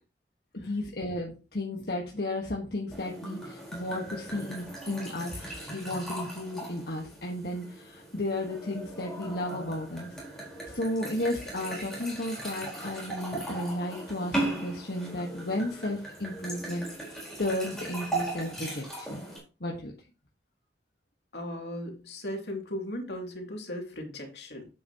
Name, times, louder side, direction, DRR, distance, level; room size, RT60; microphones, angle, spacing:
voice 1, 0.5-5.4 5.7-10.1 10.7-16.9 17.1-19.2 19.6-19.9, left 1 dB, 60° left, -1 dB, 1.5 m, -33 dB
sound 1, 2.9-19.4, right 2 dB, 5° left, 4.5 m, -38 dB
voice 2, 21.3-24.7, left 1 dB, 80° left, 1 dB, 2.8 m, -37 dB
9.9 x 8.5 x 3.0 m, 0.32 s
head